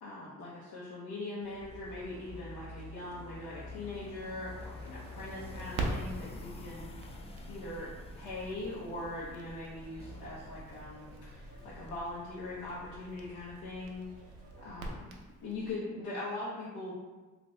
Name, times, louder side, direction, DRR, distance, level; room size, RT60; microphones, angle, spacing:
voice 1, 0.0-6.9 7.5-7.9 8.1-14.1 14.6-15.1 15.4-16.9, left 2 dB, 80° left, -7 dB, 0.7 m, -41 dB
sound 1, 1.4-14.7, right 2 dB, 50° right, 0.7 m, -58 dB
sound 2, 1.6-12.0, left 2 dB, 20° left, 0.3 m, -48 dB
Crackle, 4.5-15.7, right 2 dB, 85° right, 0.5 m, -44 dB
2.6 x 2.5 x 3.1 m, 1.3 s
cardioid pair, 90°, 30 cm